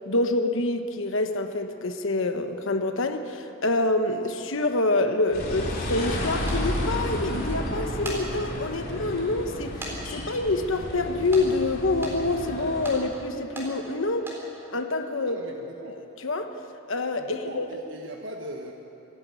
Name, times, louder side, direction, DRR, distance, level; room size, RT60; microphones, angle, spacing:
voice 1, 0.1-9.9 10.1-14.3 14.7-15.4 15.9-16.5 16.9-17.7, left 2 dB, 65° left, 7 dB, 1.1 m, -26 dB
sound 1, 5.3-12.9, left 1 dB, 45° left, 4.2 m, -32 dB
sound 2, 6.5-6.6 7.8-8.2 8.8-8.9 9.8-10.0 10.2-10.3 11.3-11.5 12.0-12.2 12.8-13.0 13.6-13.7 14.2-14.4, right 1 dB, 10° right, 4.1 m, -36 dB
voice 2, 15.3-16.0 17.2-18.7, right 1 dB, 60° right, 1 dB, 1.3 m, -39 dB
26.5 x 11.0 x 9.2 m, 2.9 s
head